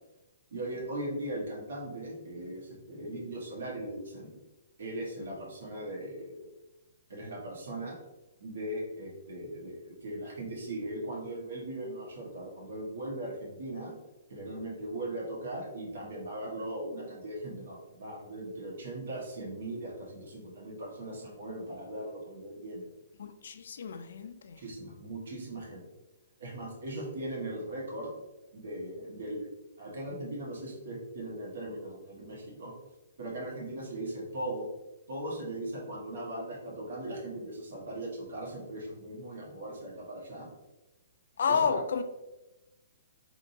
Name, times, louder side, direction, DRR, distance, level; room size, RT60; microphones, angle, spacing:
voice 1, 0.5-4.3 4.8-6.5 7.1-8.0 8.4-13.9 14.3-22.9 24.6-25.9 26.4-28.2 28.5-29.5 29.8-32.7 33.2-34.7 35.1-40.5 41.5-41.8, right 1 dB, 75° right, -3 dB, 1.4 m, -39 dB
voice 2, 23.2-24.6 41.4-42.0, left 6 dB, 70° left, 9 dB, 0.4 m, -30 dB
3.4 x 2.9 x 2.7 m, 1.0 s
hypercardioid pair, 150°, 0 cm